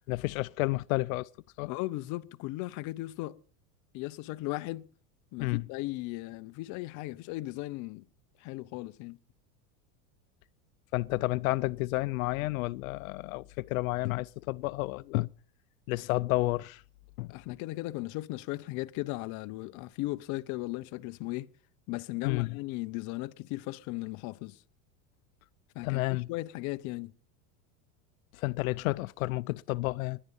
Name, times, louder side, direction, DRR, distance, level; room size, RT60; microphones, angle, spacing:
voice 1, 0.1-1.3 1.6-1.7 5.4-5.7 10.9-15.3 15.9-16.8 17.2-17.6 22.2-22.6 25.8-26.3 28.3-30.2, left 21 dB, 80° left, 0.7 m, -31 dB
voice 2, 1.6-3.4 3.9-4.9 5.3-8.0 8.4-9.2 17.3-21.5 21.9-24.6 25.7-27.1, left 19 dB, 45° left, 0.8 m, -37 dB
20.0 x 11.0 x 5.5 m
supercardioid pair, 140°, 41 cm